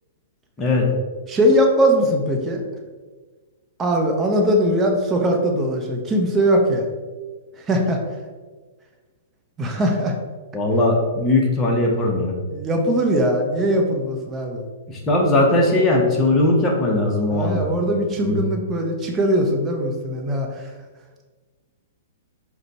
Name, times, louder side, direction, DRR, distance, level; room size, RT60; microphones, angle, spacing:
voice 1, 1.3-2.6 3.8-6.9 7.6-8.0 9.6-10.1 12.5-14.7 17.3-20.7, equal, 20° right, 2 dB, 0.8 m, -20 dB
voice 2, 10.5-12.3 14.9-17.7 18.2-18.4, left 2 dB, 20° left, -1 dB, 1.0 m, -19 dB
5.1 x 2.3 x 4.1 m, 1.4 s
hypercardioid pair, 120°, 0 cm